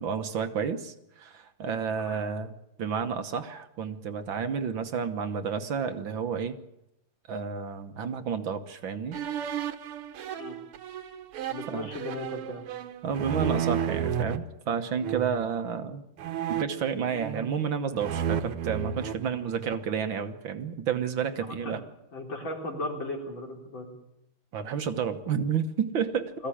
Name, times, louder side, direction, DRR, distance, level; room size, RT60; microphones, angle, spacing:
voice 1, 0.0-2.5 2.8-6.6 7.3-9.2 11.7-11.9 13.0-16.0 16.5-21.8 24.5-26.3, right 7 dB, 65° right, 8 dB, 1.9 m, -31 dB
sound 1, 9.1-14.4 15.0-15.5 16.2-17.6 17.9-19.9, right 8 dB, 85° right, 2.0 m, -33 dB
voice 2, 11.5-12.6 21.5-21.8 22.1-23.9 26.4-26.5, left 1 dB, 60° left, 1 dB, 5.0 m, -36 dB
21.5 x 15.0 x 10.0 m, 0.86 s
omnidirectional pair, 2.4 m